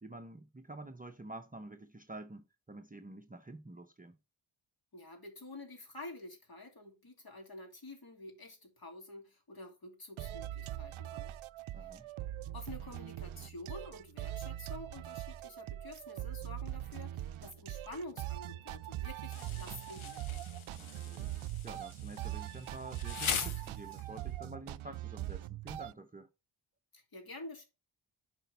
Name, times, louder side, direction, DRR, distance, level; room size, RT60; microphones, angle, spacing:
voice 1, 0.0-4.2 11.7-12.1 20.8-26.3, right 2 dB, 15° right, 0.7 m, -49 dB
voice 2, 4.9-11.4 11.8-12.0 12.5-20.4 26.9-27.6, left 2 dB, 45° left, 2.7 m, -49 dB
sound 1, 10.2-25.9, right 14 dB, 75° right, 0.5 m, -42 dB
Insect, 19.3-24.3, left 7 dB, 75° left, 1.1 m, -41 dB
8.6 x 5.2 x 3.4 m
cardioid pair, 65°, 49 cm